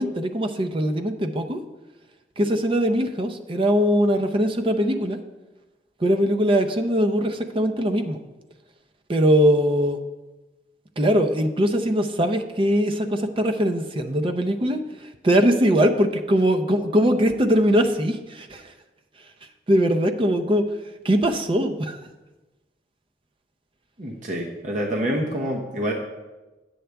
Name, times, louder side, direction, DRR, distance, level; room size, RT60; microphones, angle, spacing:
voice 1, 0.0-1.6 2.4-5.2 6.0-8.2 9.1-10.0 11.0-18.7 19.7-20.6 21.0-22.0, equal, 30° right, 6 dB, 0.6 m, -21 dB
voice 2, 24.0-25.9, equal, 45° right, -1 dB, 1.0 m, -27 dB
9.9 x 7.9 x 3.4 m, 1.1 s
head